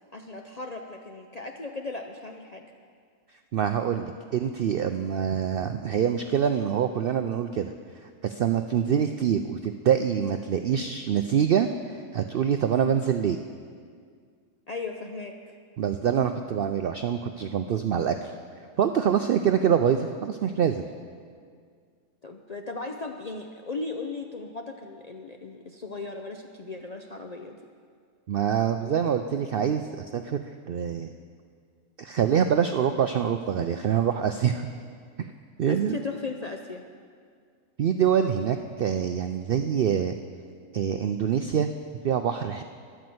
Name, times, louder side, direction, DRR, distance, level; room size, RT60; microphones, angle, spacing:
voice 1, 0.1-2.7 14.7-15.4 22.2-27.6 35.7-36.8, left 3 dB, 50° left, 3 dB, 0.5 m, -37 dB
voice 2, 3.5-7.7 8.2-11.7 12.1-13.4 15.8-18.3 18.8-20.8 28.3-31.1 32.0-34.7 35.6-36.0 37.8-40.1 40.7-41.7 42.0-42.6, right 8 dB, 70° right, 7 dB, 0.5 m, -25 dB
11.5 x 9.4 x 7.7 m, 2.1 s
omnidirectional pair, 1.5 m